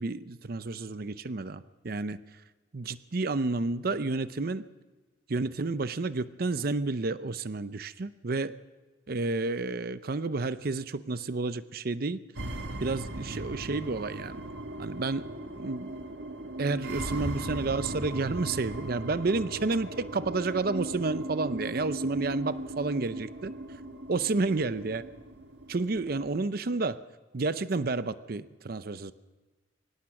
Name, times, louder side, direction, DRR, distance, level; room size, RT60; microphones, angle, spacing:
voice 1, 0.0-2.2 2.7-4.6 5.3-8.5 9.1-12.2 12.8-14.4 14.8-15.2 15.6-15.9 16.6-23.5 24.1-25.0 25.7-27.0 27.3-29.1, right 3 dB, 55° right, 13 dB, 0.7 m, -30 dB
sound 1, 12.4-26.4, right 1 dB, 75° right, 1.7 m, -38 dB
24.0 x 18.0 x 6.0 m, 1.2 s
head